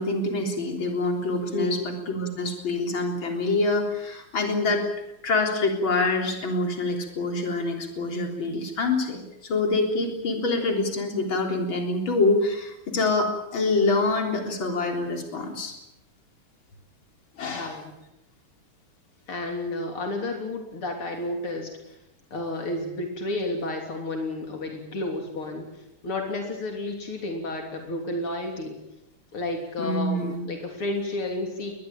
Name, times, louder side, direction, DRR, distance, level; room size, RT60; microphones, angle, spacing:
voice 1, 0.0-4.8 5.2-15.7 17.4-17.8 29.8-30.4, left 3 dB, 65° left, 3 dB, 4.4 m, -26 dB
voice 2, 1.5-1.8 17.5-18.0 19.3-21.7 22.3-28.8 29.3-31.7, left 2 dB, 85° left, 3 dB, 4.3 m, -31 dB
22.5 x 20.5 x 9.0 m, 0.88 s
omnidirectional pair, 2.3 m